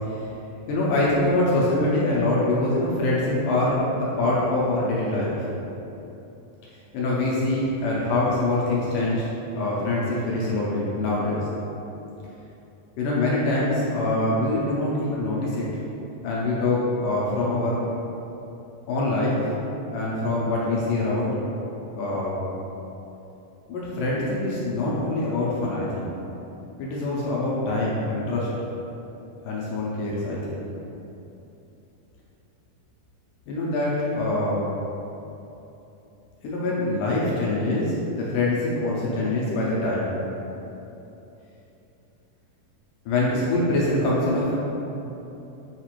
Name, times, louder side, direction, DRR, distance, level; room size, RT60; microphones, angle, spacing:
voice 1, 0.7-5.3 6.9-11.4 13.0-15.7 16.2-17.8 18.9-19.5 19.9-21.4 21.9-22.4 23.7-26.1 26.8-28.5 29.4-30.6 33.5-34.6 36.4-40.0 43.1-44.5, left 2 dB, 80° left, -6 dB, 2.0 m, -24 dB
6.6 x 2.4 x 2.9 m, 3.0 s
omnidirectional pair, 4.0 m